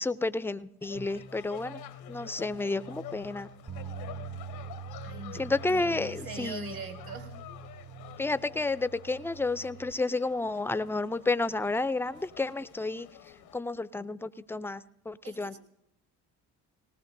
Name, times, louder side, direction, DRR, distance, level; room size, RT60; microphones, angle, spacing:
voice 1, 0.0-1.8 2.1-3.5 5.3-6.7 8.2-13.1 13.5-15.6, left 3 dB, 5° left, 15 dB, 0.4 m, -31 dB
sound 1, 0.8-13.6, left 12 dB, 75° left, 0.8 m, -49 dB
sound 2, 0.9-8.5, right 1 dB, 90° right, 1.6 m, -49 dB
Bass guitar, 3.7-9.9, right 8 dB, 30° right, 0.8 m, -45 dB
voice 2, 5.0-7.4 13.4-13.5 15.2-15.6, right 4 dB, 65° right, 4 dB, 2.0 m, -43 dB
19.0 x 18.5 x 2.6 m, 0.80 s
supercardioid pair, 65°, 38 cm